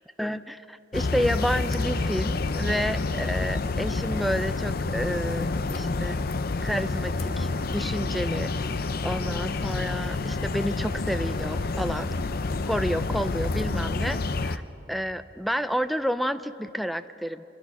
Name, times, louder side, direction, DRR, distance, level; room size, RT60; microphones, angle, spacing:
voice 1, 0.2-6.2 6.6-8.5 9.0-12.1 12.6-14.6 14.9-17.4, equal, ahead, 12 dB, 0.5 m, -30 dB
sound 1, 0.9-14.6, left 3 dB, 50° left, 0.6 m, -28 dB
Wind instrument woodwind instrument, 7.3-13.2, left 3 dB, 65° left, 5.0 m, -52 dB
26.0 x 23.0 x 6.2 m, 3.0 s
head